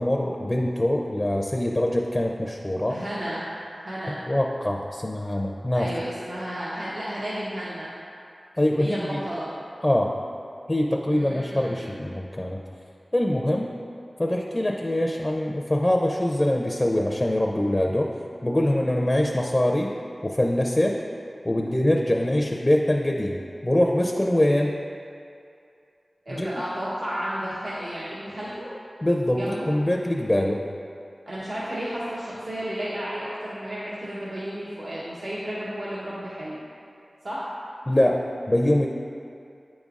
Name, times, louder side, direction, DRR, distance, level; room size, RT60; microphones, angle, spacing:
voice 1, 0.0-3.0 4.3-5.9 8.6-9.2 9.8-10.1 10.7-12.6 13.1-13.7 14.2-18.1 18.4-19.9 20.2-21.0 21.4-23.4 23.6-24.7 26.3-26.5 29.0-30.6 37.9-38.2 38.5-38.9, left 1 dB, 25° left, 1 dB, 0.5 m, -23 dB
voice 2, 2.9-3.5 3.8-4.2 5.7-7.9 8.8-9.5 11.1-11.9 26.2-28.7 29.3-29.7 31.3-36.6 37.2-37.5, equal, 75° right, -9 dB, 0.9 m, -32 dB
8.6 x 5.2 x 2.4 m, 2.5 s
wide cardioid pair, 50°, 0 cm